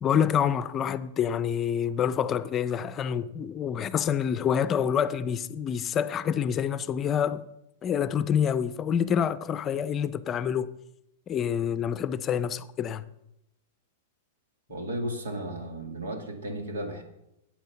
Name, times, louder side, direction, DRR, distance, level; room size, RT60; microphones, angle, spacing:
voice 1, 0.0-7.4 7.8-10.7 11.3-13.0, left 8 dB, 30° left, 0.5 m, -27 dB
voice 2, 14.7-17.0, right 1 dB, 85° right, 2.1 m, -34 dB
9.2 x 8.5 x 5.9 m
hypercardioid pair, 120°, 0 cm